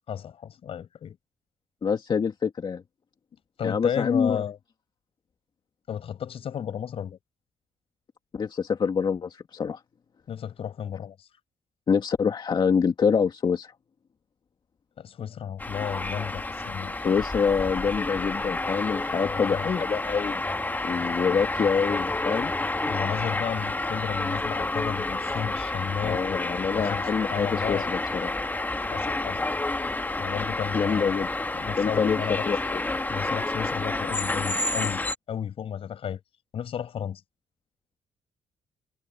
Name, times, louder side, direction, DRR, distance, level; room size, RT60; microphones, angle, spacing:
voice 1, 0.1-1.2 3.6-4.6 5.9-7.2 10.3-11.3 15.0-17.1 19.2-19.7 22.8-26.4 26.7-27.9 28.9-29.4 30.2-32.5 33.1-35.0 35.3-36.2 36.5-37.2, left 8 dB, 60° left, 5.9 m, -33 dB
voice 2, 1.8-2.8 3.6-4.4 8.3-9.8 11.9-13.7 17.0-20.4 20.8-22.5 26.0-28.3 30.7-31.3 31.8-32.8, left 6 dB, 45° left, 2.0 m, -26 dB
sound 1, 15.6-35.2, left 2 dB, 15° left, 1.6 m, -29 dB
cardioid pair, 85°, 11 cm